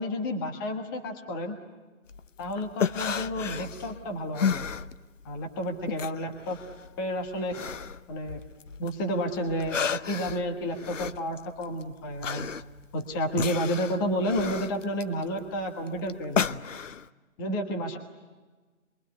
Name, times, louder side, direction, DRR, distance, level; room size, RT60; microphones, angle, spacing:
voice 1, 0.0-1.5 2.4-4.6 5.2-6.6 7.0-7.5 8.1-8.4 8.8-12.5 12.9-16.6 17.4-18.0, equal, 15° left, 4 dB, 1.4 m, -31 dB
sound 1, 2.1-5.4 5.7-9.0 9.3-17.1, left 7 dB, 65° left, 0.9 m, -33 dB
27.5 x 23.0 x 9.5 m, 1.3 s
hypercardioid pair, 160°, 40 cm